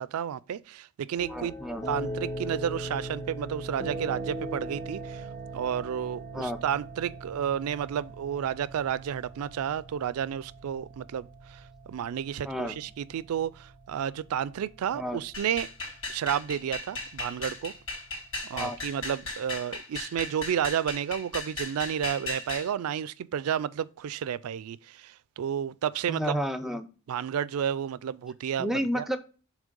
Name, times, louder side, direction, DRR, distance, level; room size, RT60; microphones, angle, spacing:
voice 1, 0.0-1.5 1.9-5.3 5.5-15.7 16.1-17.7 18.5-26.3 27.1-29.1, right 9 dB, 90° right, 0.3 m, -31 dB
sound 1, 1.2-19.1, right 1 dB, 20° left, 2.5 m, -40 dB
voice 2, 1.3-1.8 6.3-6.6 12.4-12.8 14.9-15.2 18.5-18.8 26.1-26.9 28.6-29.2, equal, ahead, 0.4 m, -31 dB
sound 2, 15.3-22.7, left 2 dB, 60° left, 3.6 m, -37 dB
7.3 x 3.2 x 5.2 m
head